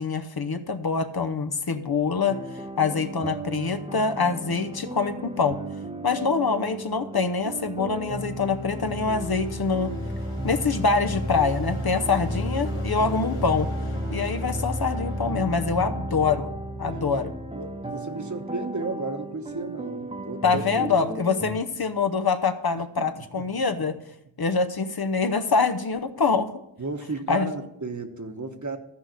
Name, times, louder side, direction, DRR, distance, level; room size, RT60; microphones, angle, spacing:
voice 1, 0.0-2.4 2.8-5.6 6.0-9.9 10.4-13.7 14.1-16.5 16.8-17.3 20.4-24.0 24.4-26.5 27.3-27.5, left 4 dB, 50° left, 9 dB, 0.8 m, -25 dB
sound 1, 2.3-21.6, right 1 dB, 10° right, 0.9 m, -36 dB
sound 2, 7.6-17.9, equal, 85° left, 1.6 m, -33 dB
voice 2, 17.5-20.9 22.8-23.1 23.4-23.5 23.8-23.9 26.8-28.8, right 3 dB, 35° right, 6 dB, 1.1 m, -34 dB
13.5 x 5.0 x 6.4 m, 0.84 s
wide cardioid pair, 45°, 49 cm